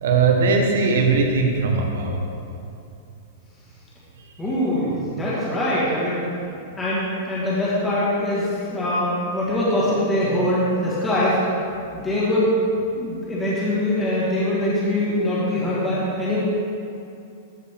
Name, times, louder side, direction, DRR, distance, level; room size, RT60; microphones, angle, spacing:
voice 1, 0.0-2.2, right 4 dB, 75° right, 2 dB, 1.2 m, -19 dB
voice 2, 4.4-6.2 6.8-11.4 11.9-12.5 12.9-16.4, left 1 dB, 10° left, -8 dB, 1.6 m, -23 dB
13.0 x 4.8 x 3.6 m, 2.6 s
supercardioid pair, 170°, 0 cm